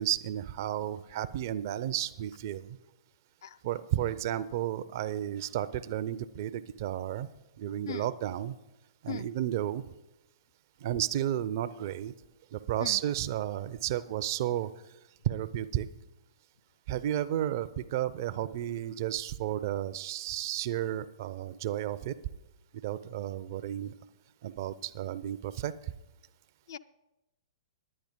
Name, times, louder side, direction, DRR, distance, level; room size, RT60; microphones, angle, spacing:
voice 1, 0.0-2.8 3.6-7.3 7.6-8.5 9.0-9.8 10.8-12.1 12.5-14.7 15.2-15.9 16.9-22.2 22.8-23.9 24.4-25.7, right 11 dB, 45° right, 16 dB, 0.5 m, -32 dB
voice 2, 3.4-3.6 7.9-8.1 9.1-9.3 12.8-13.0 26.7-26.8, left 9 dB, 55° left, 11 dB, 0.5 m, -38 dB
10.5 x 9.8 x 5.2 m, 0.95 s
figure-of-eight pair, 110°, 3 cm